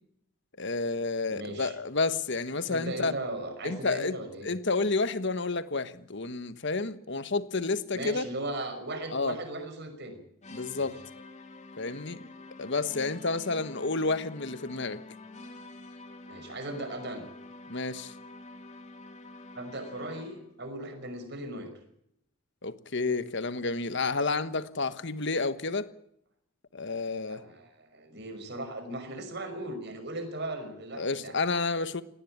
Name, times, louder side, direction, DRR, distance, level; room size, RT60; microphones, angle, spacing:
voice 1, 0.6-3.1 3.6-4.2 4.4-8.3 9.1-9.4 10.5-11.0 11.8-12.3 12.6-15.0 17.7-18.1 22.6-25.9 26.7-27.4 30.9-32.0, left 3 dB, 55° left, 1.3 m, -30 dB
voice 2, 1.3-1.8 2.7-4.5 7.9-10.2 10.7-10.9 16.2-17.2 19.5-21.7 27.3-31.4, right 1 dB, 50° right, 5.7 m, -38 dB
sound 1, 10.4-20.5, left 3 dB, 30° left, 2.6 m, -47 dB
19.0 x 18.0 x 8.8 m
head